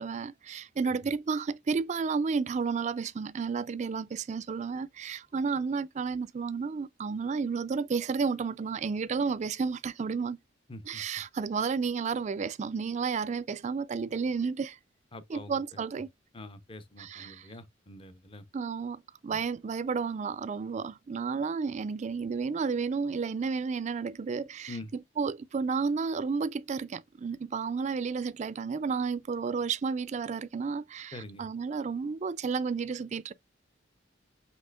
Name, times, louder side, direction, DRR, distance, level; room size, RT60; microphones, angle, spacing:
voice 1, 0.0-10.4 10.9-14.8 15.3-16.1 17.0-17.4 18.5-24.7 25.2-33.3, right 5 dB, 40° right, 0.3 m, -32 dB
voice 2, 10.7-11.0 15.1-15.8 16.3-18.5 19.3-19.4 24.7-24.9 31.1-31.5, left 2 dB, 30° left, 0.6 m, -45 dB
5.5 x 3.2 x 2.3 m
head